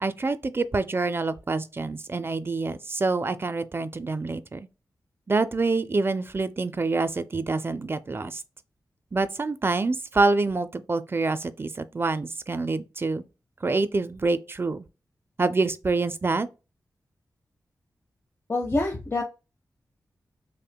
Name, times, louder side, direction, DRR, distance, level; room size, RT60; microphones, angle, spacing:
voice 1, 0.0-4.7 5.3-8.4 9.1-13.2 13.6-14.9 15.4-16.5, right 3 dB, 35° right, 0.3 m, -26 dB
voice 2, 18.5-19.2, left 2 dB, 35° left, 0.6 m, -26 dB
5.4 x 2.1 x 2.2 m
cardioid pair, 60°, 7 cm